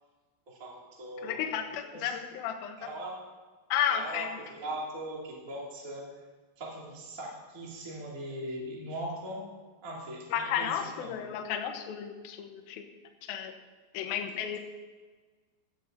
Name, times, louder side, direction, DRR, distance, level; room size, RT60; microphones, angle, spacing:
voice 1, 0.5-2.1 2.8-3.2 3.9-6.1 6.6-9.5 9.8-11.1, right 1 dB, 25° right, -3 dB, 2.2 m, -40 dB
voice 2, 1.2-2.8 3.7-4.4 10.3-12.8 13.3-13.5 13.9-14.6, left 9 dB, 90° left, 4 dB, 2.1 m, -32 dB
16.5 x 11.0 x 4.0 m, 1.4 s
omnidirectional pair, 5.9 m